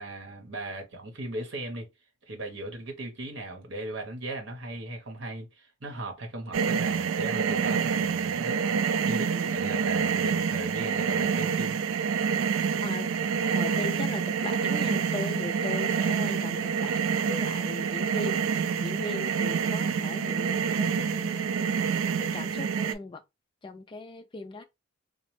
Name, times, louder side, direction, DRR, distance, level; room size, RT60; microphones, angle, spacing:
voice 1, 0.0-1.9 2.3-11.8, right 1 dB, 65° right, 0.9 m, -38 dB
sound 1, 6.5-22.9, right 6 dB, 80° right, 0.3 m, -27 dB
voice 2, 13.5-21.6 21.9-23.2 23.6-24.6, left 3 dB, 25° left, 0.3 m, -38 dB
3.0 x 2.0 x 3.1 m
head